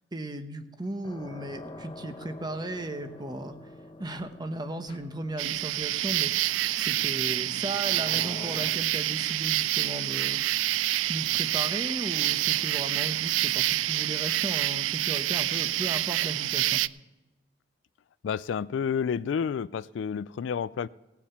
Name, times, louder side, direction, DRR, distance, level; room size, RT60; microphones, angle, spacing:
voice 1, 0.1-3.6 4.0-6.4 6.7-10.4 11.1-16.8, right 1 dB, 20° right, 8 dB, 0.9 m, -36 dB
sound 1, 1.0-8.7, left 2 dB, 25° left, 0.9 m, -46 dB
sound 2, 5.4-16.9, right 15 dB, 80° right, 0.3 m, -27 dB
voice 2, 18.2-20.9, left 7 dB, 70° left, 18 dB, 0.3 m, -30 dB
17.5 x 7.1 x 5.8 m, 1.0 s
head